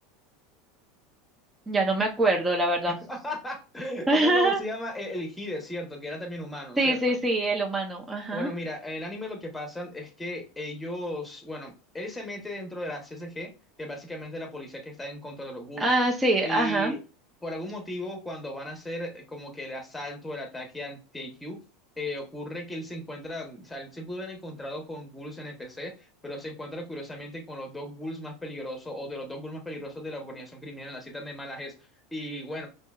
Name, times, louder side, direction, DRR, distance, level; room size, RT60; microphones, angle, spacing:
voice 1, 1.7-3.0 4.1-4.6 6.8-8.5 15.8-16.9, right 2 dB, 10° right, 0 dB, 0.6 m, -24 dB
voice 2, 2.9-7.2 8.3-13.5 13.8-15.9 16.4-17.0 17.4-21.6 22.0-31.8 32.1-32.7, left 1 dB, 5° left, 4 dB, 1.0 m, -36 dB
5.2 x 2.7 x 2.3 m, 0.32 s
supercardioid pair, 145°, 0 cm